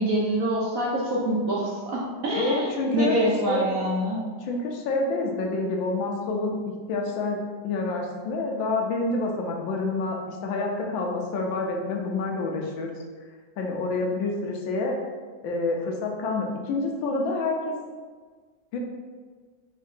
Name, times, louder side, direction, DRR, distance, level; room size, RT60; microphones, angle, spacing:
voice 1, 0.0-4.2, right 1 dB, 60° right, -4 dB, 0.9 m, -25 dB
voice 2, 2.4-3.6 4.4-7.4 7.6-12.9 13.6-15.0 15.4-17.7 18.7-18.8, left 3 dB, 85° left, 1 dB, 1.5 m, -28 dB
5.2 x 3.7 x 2.7 m, 1.5 s
omnidirectional pair, 2.0 m